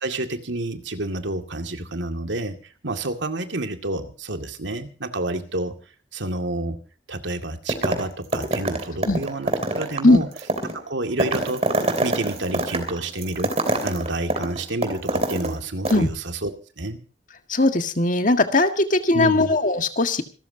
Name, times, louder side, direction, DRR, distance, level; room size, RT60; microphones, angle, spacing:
voice 1, 0.0-2.6 2.8-5.8 6.1-6.8 7.1-10.3 10.7-11.6 12.0-13.5 13.8-16.5 16.8-17.0 19.1-19.5, right 2 dB, 80° right, 6 dB, 2.2 m, -29 dB
sound 1, 7.7-8.1 8.3-15.6 15.8-16.0, right 2 dB, 35° right, 3.2 m, -25 dB
voice 2, 17.5-20.2, left 2 dB, 45° left, 7 dB, 1.8 m, -19 dB
27.0 x 13.5 x 2.8 m, 0.37 s
head